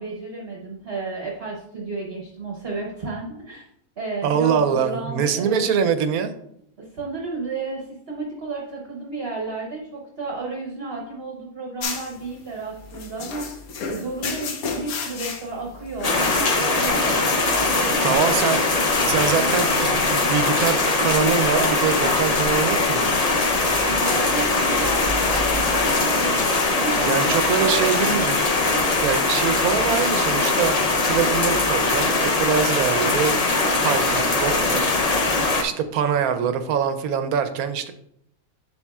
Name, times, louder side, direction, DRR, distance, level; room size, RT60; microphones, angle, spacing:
voice 1, 0.0-3.6 4.0-5.6 6.8-13.5 13.8-18.3 23.9-28.3, right 3 dB, 45° right, -2 dB, 1.1 m, -32 dB
voice 2, 4.2-6.3 18.0-18.6 19.0-23.1 27.0-28.4 29.0-30.8 31.0-33.4 33.8-34.8 35.1-37.9, right 7 dB, 85° right, 9 dB, 1.1 m, -24 dB
sound 1, 11.8-20.3, left 5 dB, 75° left, 1.3 m, -34 dB
sound 2, 16.0-35.6, left 3 dB, 40° left, 0.6 m, -21 dB
7.3 x 7.0 x 2.4 m, 0.74 s
omnidirectional pair, 1.5 m